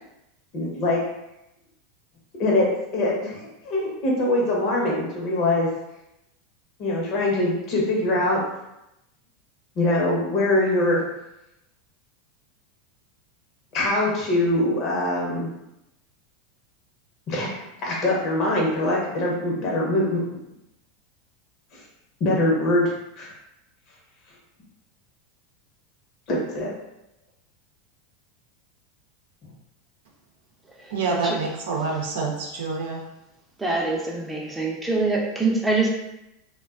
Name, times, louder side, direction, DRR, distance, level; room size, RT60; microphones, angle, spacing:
voice 1, 0.5-1.0 2.4-5.7 6.8-8.4 9.8-11.0 13.7-15.5 17.3-20.2 21.7-21.8 22.2-23.3 26.3-26.7, left 1 dB, 50° left, -3 dB, 0.8 m, -23 dB
voice 2, 30.9-33.0, right 4 dB, 75° right, -2 dB, 0.6 m, -27 dB
voice 3, 33.6-35.9, right 3 dB, 10° right, -2 dB, 0.6 m, -24 dB
2.4 x 2.2 x 2.3 m, 0.89 s
hypercardioid pair, 100°, 0 cm